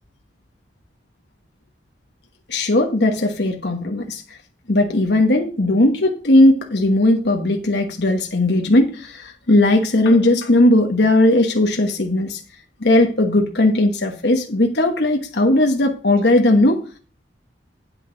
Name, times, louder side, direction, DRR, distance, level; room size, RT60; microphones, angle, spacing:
voice 1, 2.5-4.2 4.7-12.4 12.8-16.8, left 1 dB, 65° left, 1.2 m, -17 dB
8.9 x 8.8 x 3.9 m
head